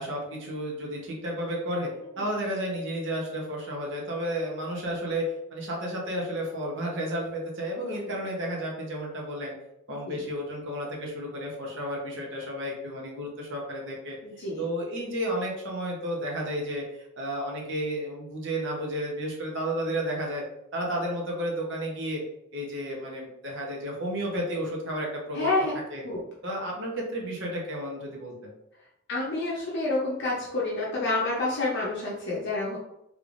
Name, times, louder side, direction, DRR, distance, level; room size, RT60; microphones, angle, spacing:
voice 1, 0.0-1.9 2.2-5.2 5.5-9.5 9.9-14.2 14.6-16.8 17.2-20.4 20.7-22.2 22.5-25.5 25.9-26.0 26.4-28.5, equal, 55° right, -2 dB, 0.9 m, -32 dB
voice 2, 7.8-8.2 9.9-10.3 14.2-14.6 25.3-25.7 26.0-26.2 29.1-32.8, left 2 dB, 50° left, -5 dB, 0.6 m, -29 dB
3.3 x 3.3 x 2.5 m, 0.84 s
head